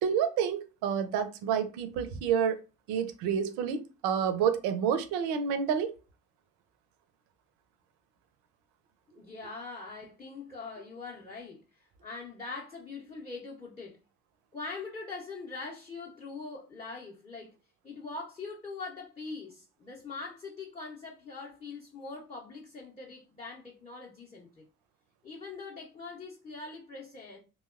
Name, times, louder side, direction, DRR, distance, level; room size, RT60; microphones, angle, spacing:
voice 1, 0.0-2.6 2.9-5.9, right 7 dB, 60° right, 0.6 m, -29 dB
voice 2, 9.1-14.0 14.5-17.5 17.8-24.6 25.2-27.4, left 3 dB, 15° left, 0.6 m, -42 dB
2.8 x 2.1 x 2.3 m
figure-of-eight pair, 45°, 42 cm